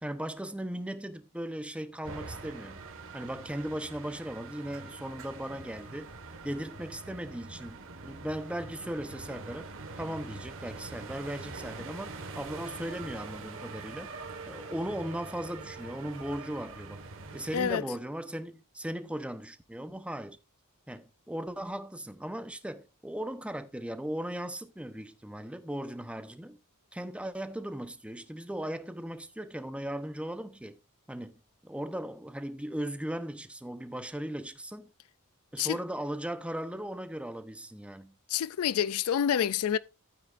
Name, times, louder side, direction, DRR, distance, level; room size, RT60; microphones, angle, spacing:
voice 1, 0.0-2.9 3.1-6.1 6.4-9.7 10.0-14.1 14.5-17.0 17.3-20.4 20.9-26.6 26.9-30.8 31.1-31.4 31.6-34.9 35.5-38.2, right 1 dB, 5° right, 0.9 m, -37 dB
sound 1, 2.0-17.8, right 3 dB, 65° right, 1.6 m, -44 dB
voice 2, 17.5-17.8 35.6-35.8 38.3-39.8, left 9 dB, 70° left, 0.4 m, -28 dB
12.5 x 9.2 x 2.5 m
head